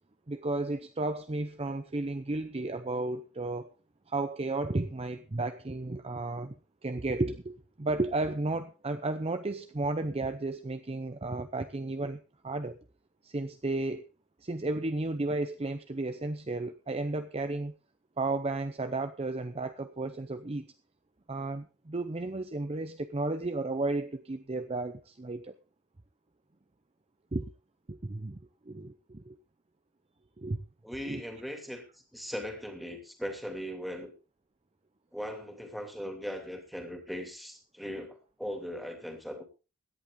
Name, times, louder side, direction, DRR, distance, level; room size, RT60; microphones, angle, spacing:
voice 1, 0.3-3.7 4.1-6.5 6.8-12.8 13.2-14.1 14.4-17.8 18.2-20.7 21.3-25.5 27.3-27.5 27.9-28.4 28.7-29.4 30.4-30.6 31.0-31.2, right 2 dB, 30° right, 0.7 m, -33 dB
voice 2, 30.8-34.1 35.1-39.4, equal, ahead, 2.7 m, -39 dB
17.0 x 11.0 x 3.7 m
head